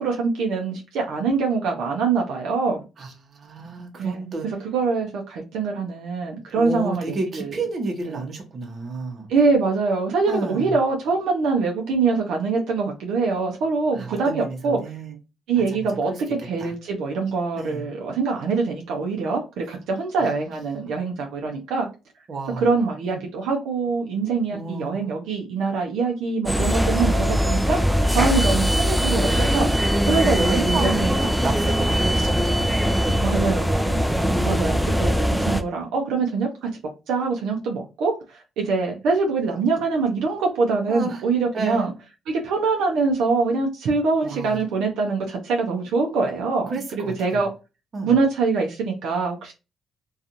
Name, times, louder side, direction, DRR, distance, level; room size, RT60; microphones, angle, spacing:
voice 1, 0.0-2.8 4.0-7.5 8.1-8.2 9.3-14.8 15.5-16.1 16.4-21.9 22.6-27.8 28.1-29.7 30.0-31.2 33.2-36.7 37.1-41.9 42.3-47.5 48.0-49.5, right 4 dB, 90° right, 0.5 m, -24 dB
voice 2, 3.0-4.5 6.5-9.3 10.3-10.8 13.9-15.2 15.6-15.8 16.1-16.2 16.6-16.7 17.6-17.9 20.9-21.0 22.3-22.7 23.0-23.2 24.5-25.1 30.3-33.3 34.2-34.7 40.9-41.2 41.5-41.9 44.2-44.6 46.7-47.4 47.9-48.2, right 3 dB, 45° right, 0.8 m, -31 dB
sound 1, 26.5-35.6, equal, ahead, 0.3 m, -21 dB
2.5 x 2.3 x 2.8 m
cardioid pair, 90°, 0 cm